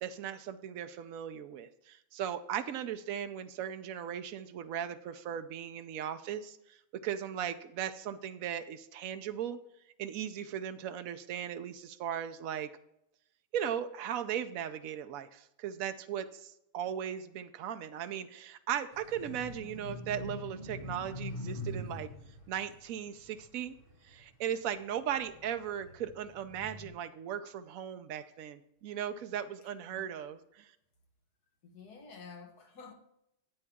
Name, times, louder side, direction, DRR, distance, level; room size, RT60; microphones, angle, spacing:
voice 1, 0.0-9.6 10.0-12.7 13.5-22.1 22.5-23.7 24.0-30.7, right 9 dB, 80° right, 0.7 m, -37 dB
sound 1, 18.9-24.5 25.0-26.9, left 1 dB, 25° left, 2.2 m, -43 dB
voice 2, 29.6-30.2 31.6-32.9, left 5 dB, 55° left, 1.7 m, -51 dB
11.0 x 8.5 x 3.6 m
omnidirectional pair, 2.2 m